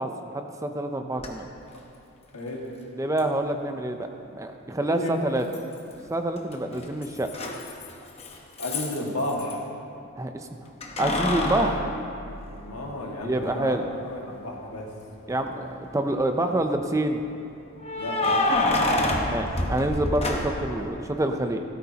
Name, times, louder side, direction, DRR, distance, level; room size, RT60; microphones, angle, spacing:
voice 1, 0.0-1.5 3.0-5.4 6.1-7.3 10.2-10.5 11.0-11.8 13.2-13.8 15.3-17.2 19.2-21.6, right 1 dB, 15° right, 6 dB, 0.5 m, -27 dB
Keys jangling, 1.2-1.3 3.2-3.3 5.5-6.1 6.4-9.5 10.8-12.9 13.4-13.5 15.3-15.8 17.8-20.8, left 1 dB, 30° left, 1.0 m, -27 dB
voice 2, 2.3-2.7 4.8-5.2 8.6-9.7 12.5-14.9 18.0-18.8 20.7-20.8, left 1 dB, 85° left, -1 dB, 1.9 m, -33 dB
16.0 x 13.5 x 2.9 m, 2.6 s
head